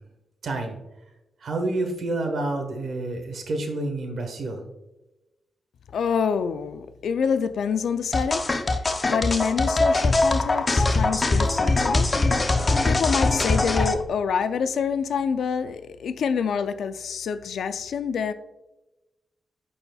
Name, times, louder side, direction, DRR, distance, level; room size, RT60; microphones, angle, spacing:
voice 1, 0.4-0.8 1.4-4.6, right 2 dB, 65° right, 1.3 m, -28 dB
voice 2, 5.9-8.4 9.0-12.1 12.9-18.3, left 6 dB, 80° left, 0.4 m, -26 dB
sound 1, 8.1-13.9, left 2 dB, 30° left, 0.5 m, -22 dB
12.0 x 4.3 x 2.3 m
wide cardioid pair, 110°, 0 cm